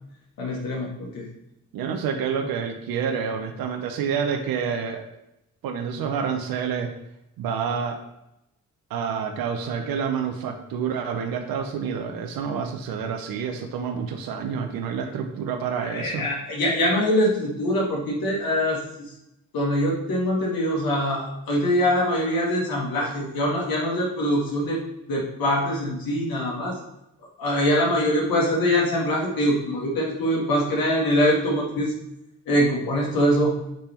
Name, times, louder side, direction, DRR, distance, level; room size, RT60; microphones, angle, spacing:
voice 1, 0.4-1.3 15.8-19.1 19.5-24.8 25.1-26.8 27.4-31.9 32.5-33.5, equal, 80° left, -2 dB, 2.0 m, -23 dB
voice 2, 1.7-5.0 5.6-6.9 7.4-8.0 8.9-16.3, right 6 dB, 80° right, 5 dB, 0.7 m, -28 dB
7.6 x 3.4 x 4.4 m, 0.84 s
supercardioid pair, 45°, 35 cm